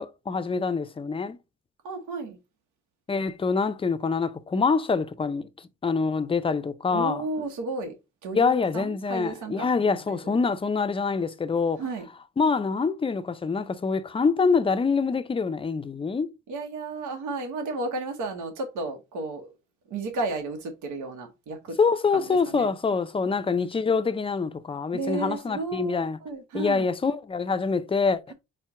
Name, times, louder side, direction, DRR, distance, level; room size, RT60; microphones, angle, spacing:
voice 1, 0.0-1.4 3.1-5.5 5.8-7.2 8.3-11.8 12.4-16.3 21.8-26.2 26.5-28.3, left 4 dB, 20° left, 0.4 m, -25 dB
voice 2, 1.8-2.4 6.9-7.9 8.2-10.4 11.8-12.1 16.5-19.5 19.9-21.8 22.1-22.7 24.9-26.9, right 3 dB, 80° right, 0.9 m, -33 dB
4.3 x 2.1 x 4.6 m
cardioid pair, 90°, 30 cm